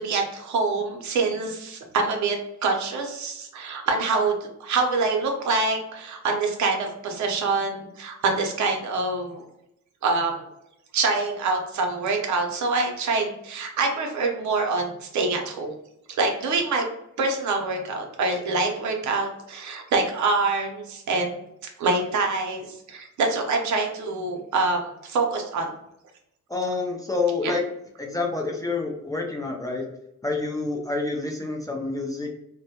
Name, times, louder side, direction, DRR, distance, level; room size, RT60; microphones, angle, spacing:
voice 1, 0.0-9.4 10.0-10.4 10.9-15.7 16.2-16.9 17.2-21.4 21.8-25.7 27.4-27.5, right 3 dB, 70° right, 2 dB, 0.7 m, -25 dB
voice 2, 26.5-27.6 28.0-29.8 30.2-32.3, left 3 dB, 10° left, 0 dB, 0.3 m, -28 dB
2.2 x 2.1 x 2.7 m, 0.80 s
cardioid pair, 90°, 30 cm